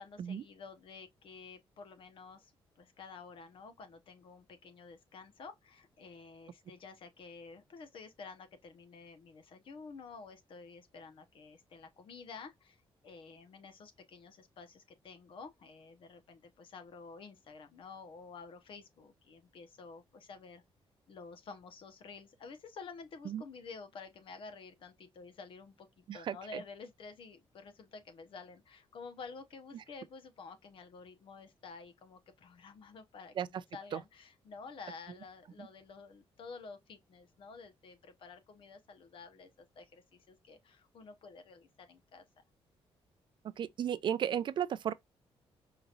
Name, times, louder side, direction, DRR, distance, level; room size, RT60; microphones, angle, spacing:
voice 1, 0.0-2.5 2.8-20.6 21.1-42.2, left 4 dB, 60° left, 1.0 m, -51 dB
voice 2, 26.1-26.6 33.4-33.5 43.6-44.9, right 9 dB, 50° right, 0.4 m, -34 dB
4.9 x 3.0 x 2.4 m
cardioid pair, 145°, 10 cm